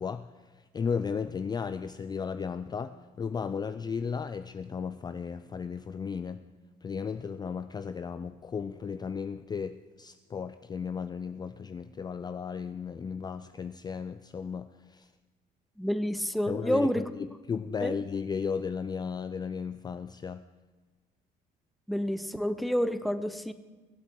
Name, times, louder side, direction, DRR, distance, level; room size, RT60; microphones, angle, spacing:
voice 1, 0.0-6.4 6.8-15.1 16.5-20.4, left 6 dB, 25° left, 0.4 m, -35 dB
voice 2, 15.8-17.1 17.8-17.9 21.9-23.5, equal, ahead, 0.7 m, -29 dB
23.0 x 8.1 x 4.6 m
cardioid pair, 110°, 17 cm